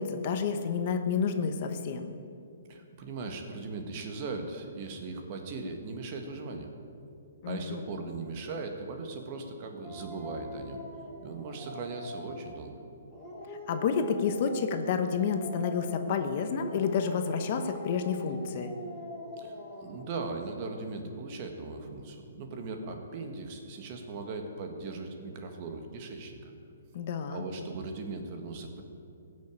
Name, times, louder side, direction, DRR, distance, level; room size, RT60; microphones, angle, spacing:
voice 1, 0.0-2.1 7.4-7.8 13.7-18.7 26.9-27.4, left 6 dB, 45° left, 7 dB, 1.1 m, -30 dB
voice 2, 2.7-6.7 7.5-10.8 11.2-12.8 19.4-26.5 27.3-28.8, right 3 dB, 40° right, 4 dB, 1.7 m, -39 dB
Dog, 9.8-12.6 13.1-16.2 16.6-20.1, left 1 dB, ahead, 4.2 m, -42 dB
16.0 x 6.6 x 8.4 m, 2.5 s
hypercardioid pair, 150°, 0 cm